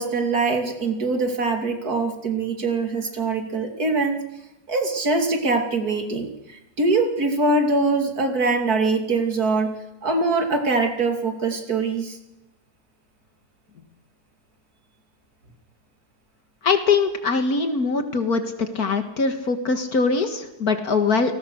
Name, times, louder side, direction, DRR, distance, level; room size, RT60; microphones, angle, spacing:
voice 1, 0.0-4.2 4.7-12.2, right 3 dB, 65° right, 4 dB, 3.1 m, -23 dB
voice 2, 16.6-21.3, left 4 dB, 65° left, 7 dB, 2.2 m, -22 dB
30.0 x 19.0 x 6.4 m, 0.96 s
omnidirectional pair, 1.7 m